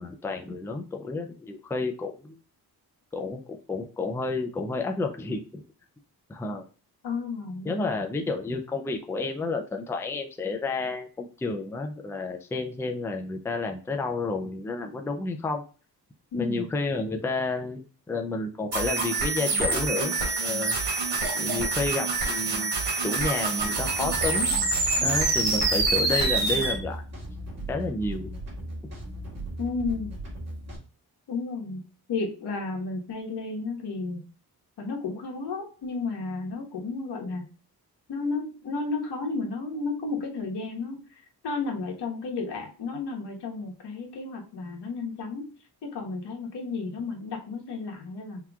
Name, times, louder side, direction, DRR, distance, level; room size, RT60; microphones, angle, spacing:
voice 1, 0.0-2.4 3.1-5.6 6.3-6.6 7.6-15.6 16.3-20.1 20.4-20.8 21.3-22.7 23.0-24.5 25.0-27.0 27.7-28.3, left 3 dB, 5° left, 4 dB, 0.4 m, -30 dB
voice 2, 7.0-8.0 16.3-16.7 29.6-30.1 31.3-31.8 32.1-34.2 34.8-37.4 38.1-41.0 41.4-45.4 45.8-48.4, left 4 dB, 85° left, 0 dB, 1.4 m, -32 dB
sound 1, 18.7-26.7, right 3 dB, 80° right, 2.3 m, -26 dB
sound 2, 23.8-30.8, right 1 dB, 40° right, 2.2 m, -37 dB
5.7 x 2.9 x 2.3 m, 0.38 s
wide cardioid pair, 155°, 40 cm